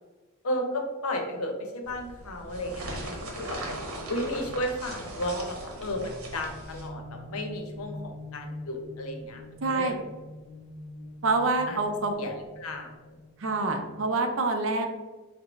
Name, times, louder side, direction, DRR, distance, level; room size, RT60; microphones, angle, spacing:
voice 1, 0.4-3.8 4.1-9.4 9.7-9.9 11.7-11.8 12.2-12.9, left 1 dB, 80° left, 3 dB, 0.7 m, -33 dB
sound 1, 1.8-6.9, right 1 dB, 85° right, 0.9 m, -39 dB
sound 2, 5.9-13.7, left 1 dB, 30° left, 0.4 m, -44 dB
voice 2, 9.6-9.9 11.2-12.1 13.4-14.9, right 3 dB, 65° right, 4 dB, 0.5 m, -26 dB
4.1 x 2.1 x 4.4 m, 1.2 s
head